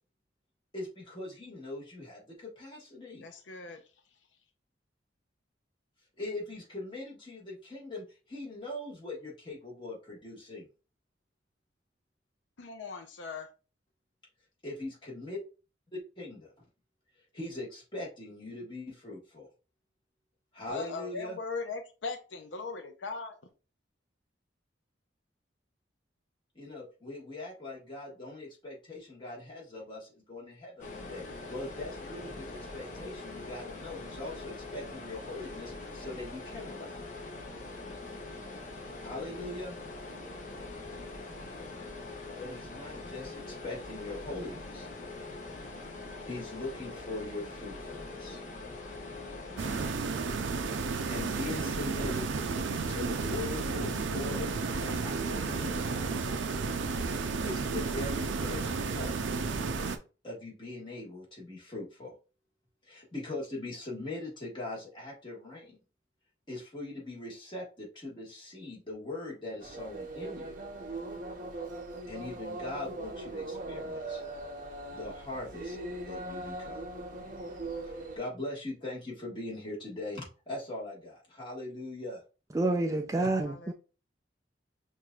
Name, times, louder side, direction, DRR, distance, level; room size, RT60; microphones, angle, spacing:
voice 1, 0.7-3.3 6.2-10.7 14.6-15.4 15.9-16.5 17.3-19.5 20.5-21.4 26.5-37.0 39.0-39.8 42.4-44.9 46.2-48.4 51.1-52.3 52.9-54.5 54.8-56.1 57.4-59.2 60.2-62.1 62.8-65.8 66.5-70.6 72.1-74.2 74.9-75.8 76.0-76.8 77.9-82.2, left 2 dB, 25° left, 1.5 m, -41 dB
voice 2, 3.2-3.8 12.6-13.5 20.7-23.3 83.4-83.7, left 4 dB, 75° left, 0.6 m, -39 dB
sound 1, 30.8-49.9, left 2 dB, 40° left, 0.8 m, -43 dB
sound 2, 49.6-60.0, right 4 dB, 80° right, 0.5 m, -32 dB
sound 3, 69.6-78.2, right 2 dB, 45° right, 0.7 m, -40 dB
voice 3, 82.5-83.7, right 2 dB, 15° right, 0.3 m, -28 dB
5.9 x 2.6 x 2.3 m
head